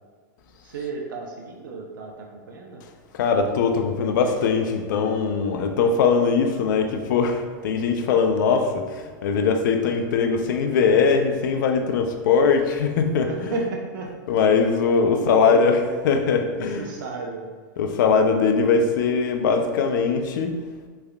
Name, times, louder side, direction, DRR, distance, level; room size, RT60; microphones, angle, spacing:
voice 1, 0.6-2.8 13.1-14.1 15.1-17.5, right 3 dB, 80° right, 0 dB, 0.5 m, -33 dB
voice 2, 3.1-13.5 14.3-15.8 16.0-16.8 17.8-20.6, left 5 dB, 70° left, 5 dB, 0.4 m, -21 dB
3.4 x 3.3 x 2.2 m, 1.5 s
hypercardioid pair, 120°, 11 cm